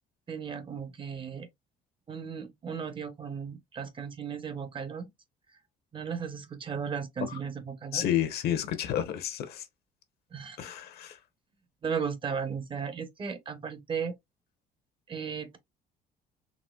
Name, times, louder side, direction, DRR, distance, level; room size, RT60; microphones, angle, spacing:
voice 1, 0.3-1.5 2.1-5.1 5.9-8.1 10.3-10.7 11.8-14.1 15.1-15.6, right 6 dB, 30° right, 0.6 m, -35 dB
voice 2, 7.9-9.7 10.6-11.2, left 10 dB, 70° left, 0.8 m, -30 dB
4.1 x 2.7 x 2.2 m
cardioid pair, 110°, 17 cm